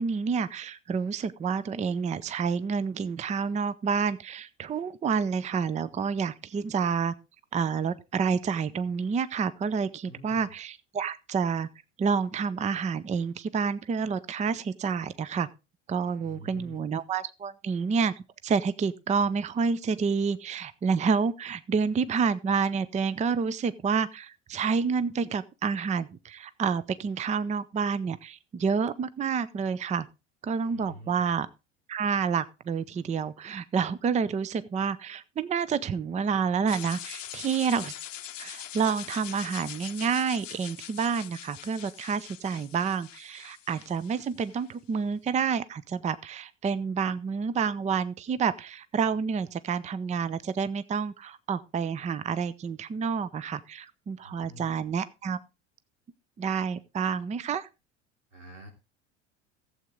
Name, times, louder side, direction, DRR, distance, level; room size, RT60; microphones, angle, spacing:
voice 1, 0.0-7.1 7.5-11.7 12.0-15.5 15.9-30.1 30.4-31.5 31.9-37.9 38.4-55.4 56.4-57.7, right 6 dB, 20° right, 0.6 m, -29 dB
voice 2, 10.1-10.5 16.2-16.9 30.7-31.3 54.2-54.8 58.3-58.7, equal, 85° right, 3.2 m, -46 dB
sound 1, 36.7-44.7, left 11 dB, 85° left, 0.7 m, -43 dB
15.0 x 7.9 x 3.7 m
hypercardioid pair, 75°, 37 cm